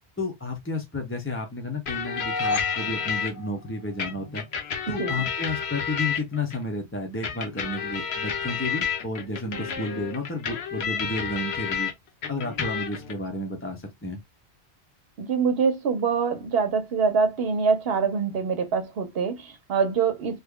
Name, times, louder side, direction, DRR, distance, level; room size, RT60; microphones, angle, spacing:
voice 1, 0.2-4.5 4.9-11.9 12.3-14.2, left 2 dB, 15° left, 0.5 m, -32 dB
sound 1, 1.9-3.3 4.0-6.6 7.2-11.9 12.2-13.1, left 7 dB, 75° left, 1.1 m, -30 dB
sound 2, 2.0-4.3, left 3 dB, 55° left, 0.8 m, -33 dB
voice 2, 15.2-20.4, right 5 dB, 65° right, 1.0 m, -24 dB
3.1 x 2.2 x 3.6 m
omnidirectional pair, 1.1 m